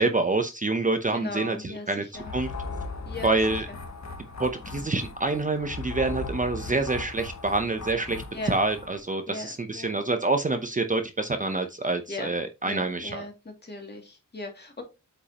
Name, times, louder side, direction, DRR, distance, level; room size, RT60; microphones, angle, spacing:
voice 1, 0.0-2.0 2.3-2.5 3.2-3.7 4.4-13.2, right 3 dB, 25° right, 6 dB, 0.7 m, -27 dB
voice 2, 1.1-2.3 3.1-3.4 8.3-8.5 9.3-9.9 12.1-12.3 12.6-14.8, left 3 dB, 30° left, 2 dB, 2.4 m, -38 dB
sound 1, 2.1-9.0, left 3 dB, 60° left, 1.2 m, -38 dB
8.3 x 5.4 x 2.9 m, 0.25 s
wide cardioid pair, 145°, 32 cm